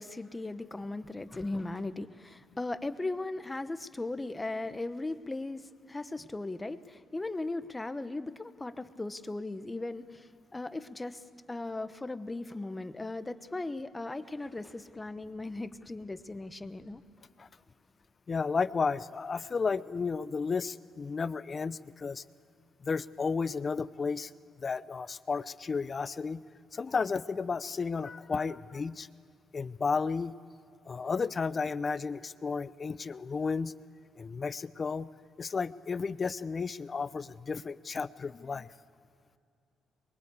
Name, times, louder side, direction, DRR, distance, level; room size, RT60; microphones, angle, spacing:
voice 1, 0.0-11.2 11.5-17.0, left 2 dB, 15° left, 11 dB, 1.0 m, -37 dB
voice 2, 18.3-22.2 22.8-24.3 24.6-26.4 26.7-29.1 29.5-30.3 30.9-33.7 34.2-35.1 35.4-38.7, left 5 dB, 35° left, 16 dB, 0.7 m, -33 dB
23.5 x 22.5 x 8.3 m, 2.4 s
cardioid pair, 90°, 0 cm